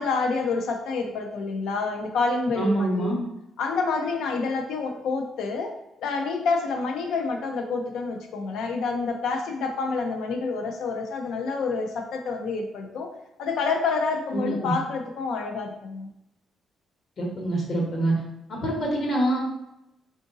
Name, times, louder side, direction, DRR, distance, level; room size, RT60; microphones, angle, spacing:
voice 1, 0.0-3.2 3.6-5.7 6.0-13.1 13.4-16.1, left 4 dB, 80° left, 4 dB, 0.5 m, -28 dB
voice 2, 2.6-3.2 14.3-14.7 17.2-18.1 18.5-19.4, right 1 dB, 55° left, -1 dB, 1.1 m, -25 dB
3.8 x 2.5 x 2.5 m, 0.85 s
cardioid pair, 90°, 0 cm